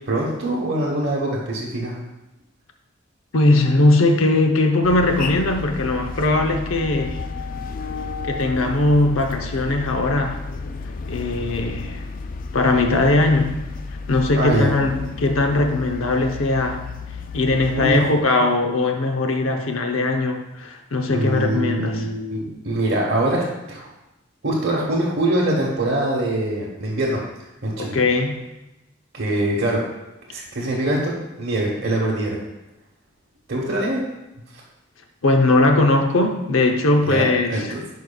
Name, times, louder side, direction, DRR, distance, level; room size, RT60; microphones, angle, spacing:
voice 1, 0.0-2.0 14.4-14.7 17.7-18.1 21.1-23.8 24.4-27.2 27.6-28.0 29.1-29.8 30.3-32.4 33.5-34.0 37.0-37.8, right 1 dB, 55° right, -6 dB, 1.1 m, -23 dB
voice 2, 3.3-7.2 8.2-10.4 11.1-12.0 12.5-13.6 14.1-16.8 17.3-22.1 27.8-28.4 35.2-37.6, left 2 dB, 90° left, 3 dB, 0.7 m, -19 dB
sound 1, 4.8-18.0, left 4 dB, 45° left, 0.3 m, -32 dB
10.5 x 4.7 x 2.3 m, 0.97 s
head